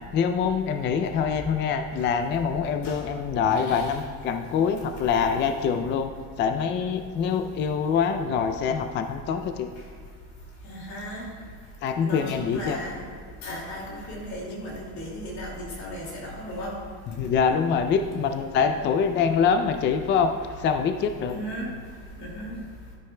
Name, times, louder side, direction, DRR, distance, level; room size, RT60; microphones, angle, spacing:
voice 1, 0.1-6.1 6.4-9.7 11.8-12.8 17.2-20.3 20.6-21.4, left 6 dB, 30° left, 7 dB, 0.4 m, -25 dB
voice 2, 3.6-4.0 10.6-11.4 12.0-13.0 13.4-16.8 21.3-21.8 22.2-22.6, equal, 50° left, -2 dB, 2.4 m, -35 dB
12.0 x 10.5 x 2.2 m, 2.1 s
cardioid pair, 140°, 37 cm